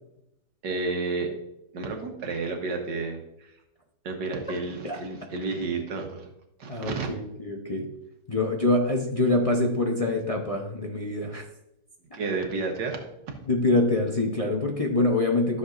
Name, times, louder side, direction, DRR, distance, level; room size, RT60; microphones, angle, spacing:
voice 1, 0.6-1.3 1.7-3.5 4.0-6.3 6.6-7.1 12.1-13.0 13.3-13.4, right 3 dB, 90° right, 3 dB, 1.9 m, -31 dB
voice 2, 6.7-7.9 8.3-11.4 13.5-15.6, left 2 dB, 30° left, 0 dB, 0.7 m, -25 dB
13.0 x 6.9 x 2.6 m, 0.84 s
omnidirectional pair, 1.8 m